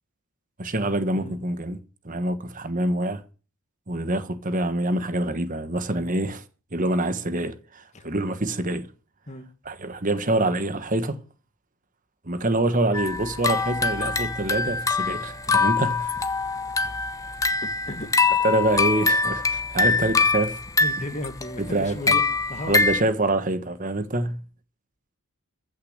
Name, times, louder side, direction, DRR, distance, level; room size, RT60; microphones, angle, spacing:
voice 1, 0.6-1.8 2.0-3.2 3.9-6.4 6.7-8.9 9.6-11.2 12.2-16.3 18.4-20.6 21.6-22.2 22.7-24.4, right 2 dB, 35° right, 1.4 m, -26 dB
sound 1, 12.9-23.0, left 4 dB, 15° left, 1.0 m, -24 dB
voice 2, 17.6-18.1 20.8-22.8, left 1 dB, 35° left, 1.9 m, -35 dB
15.0 x 6.8 x 8.1 m
head